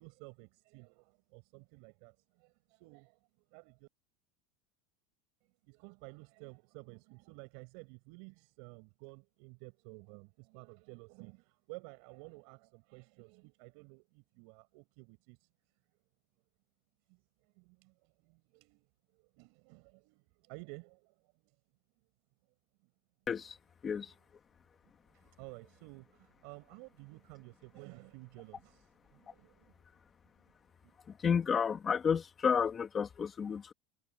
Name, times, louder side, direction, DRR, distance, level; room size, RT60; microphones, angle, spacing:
voice 1, 0.0-3.2 3.5-3.9 5.4-15.5 17.1-18.9 19.1-21.6 23.9-24.2 25.1-29.7 30.8-30.9, right 31 dB, 60° right, 6.9 m, -54 dB
voice 2, 31.2-33.7, left 7 dB, 20° left, 2.1 m, -31 dB
supercardioid pair, 155°, 0 cm